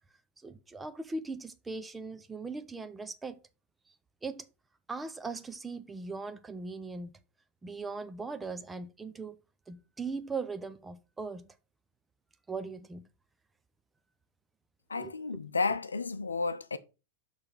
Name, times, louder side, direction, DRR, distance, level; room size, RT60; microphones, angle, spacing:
voice 1, 0.4-3.4 4.2-4.5 4.9-7.1 7.6-9.4 9.7-11.5 12.5-13.1 15.0-15.1, right 4 dB, 10° right, 0.9 m, -39 dB
voice 2, 14.9-16.8, left 4 dB, 75° left, 0.7 m, -32 dB
6.8 x 6.0 x 5.5 m
figure-of-eight pair, 90°, 0 cm